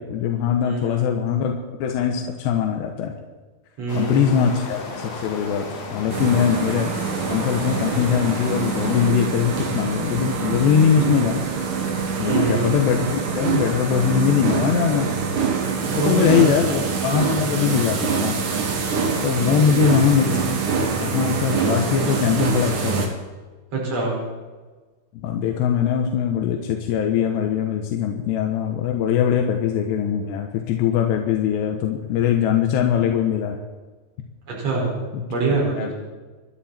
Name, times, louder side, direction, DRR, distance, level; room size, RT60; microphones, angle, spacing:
voice 1, 0.0-3.1 3.9-5.7 5.9-6.9 7.3-11.4 12.2-15.1 15.9-18.4 19.2-20.4 20.8-23.1 25.2-33.6 35.1-35.2 35.8-36.0, left 8 dB, 90° left, 2 dB, 3.3 m, -21 dB
voice 2, 0.6-1.2 3.8-4.6 12.2-12.8 16.0-16.6 19.6-20.0 23.7-24.2 34.5-34.9 35.3-36.0, right 3 dB, 40° right, -4 dB, 6.3 m, -25 dB
sound 1, 3.9-9.1, left 2 dB, 45° left, 3.6 m, -34 dB
sound 2, 6.1-23.1, right 5 dB, 55° right, 3.0 m, -25 dB
26.5 x 11.0 x 4.4 m, 1.3 s
omnidirectional pair, 4.8 m